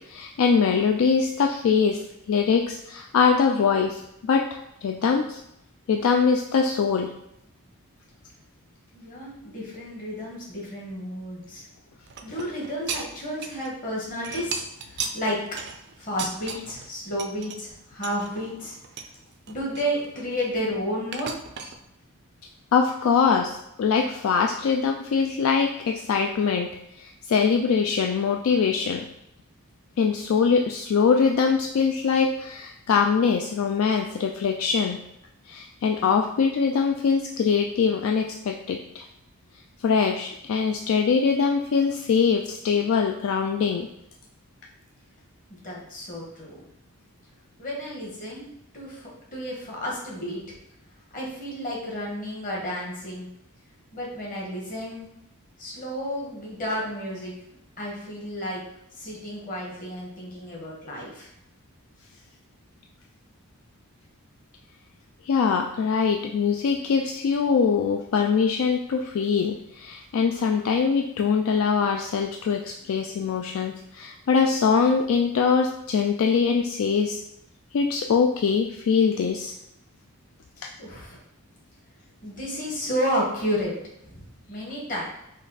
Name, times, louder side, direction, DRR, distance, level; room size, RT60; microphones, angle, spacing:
voice 1, 0.1-2.0 2.3-5.4 5.9-7.1 22.7-26.7 27.0-29.1 30.0-35.0 35.5-39.1 39.8-43.9 65.3-77.2 77.7-79.5 80.6-80.7, left 5 dB, 65° left, 3 dB, 0.3 m, -23 dB
voice 2, 8.9-11.7 12.2-15.4 16.0-18.8 19.5-21.3 45.5-46.6 47.6-48.5 48.7-50.4 51.1-53.3 53.9-55.1 55.6-57.3 57.8-58.6 58.9-61.3 72.8-73.1 80.8-81.2 82.2-83.7 84.0-85.0, equal, 35° left, -3 dB, 1.4 m, -31 dB
sound 1, 12.1-13.7 14.0-16.9 17.2-17.6 18.0-19.1 19.5-20.6 21.1-21.8, right 6 dB, 50° right, 0.4 m, -36 dB
5.1 x 2.4 x 4.1 m, 0.81 s
head